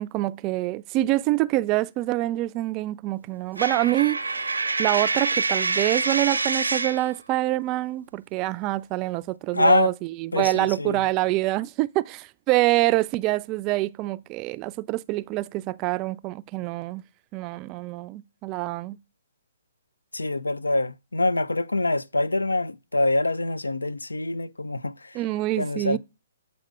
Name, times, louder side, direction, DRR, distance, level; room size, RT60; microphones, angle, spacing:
voice 1, 0.0-4.5 4.8-9.9 10.2-17.0 17.3-19.0 25.1-26.0, right 17 dB, 30° right, 0.3 m, -26 dB
Coin (dropping), 3.6-7.1, right 3 dB, 85° right, 0.6 m, -26 dB
voice 2, 9.5-9.9 10.3-11.0 20.1-25.2 25.6-26.0, left 2 dB, 90° left, 0.4 m, -25 dB
7.8 x 4.0 x 4.9 m
figure-of-eight pair, 130°, 0 cm